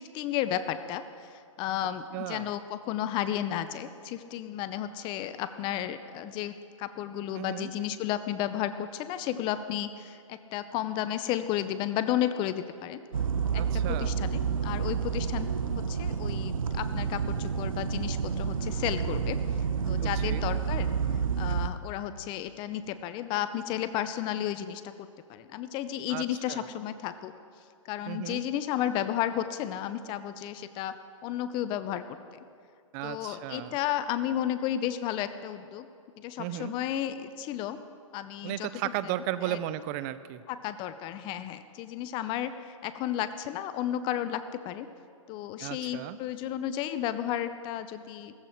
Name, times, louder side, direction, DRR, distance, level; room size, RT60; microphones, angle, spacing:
voice 1, 0.0-13.0 13.5-15.5 15.9-19.4 19.9-20.9 21.4-27.3 27.9-31.0 31.2-32.2 33.0-35.9 36.2-37.8 38.1-38.7 39.4-39.6 40.5-44.9 45.3-48.3, left 11 dB, 30° left, 12 dB, 0.6 m, -33 dB
voice 2, 2.1-2.5 7.4-7.7 13.5-14.2 20.0-20.4 26.1-26.7 28.1-28.4 32.9-33.8 36.4-36.7 38.4-40.4 45.6-46.2, right 13 dB, 35° right, 15 dB, 0.6 m, -35 dB
sound 1, 13.1-21.7, right 6 dB, 90° right, 0.8 m, -29 dB
17.0 x 14.5 x 4.5 m, 2.3 s
hypercardioid pair, 130°, 17 cm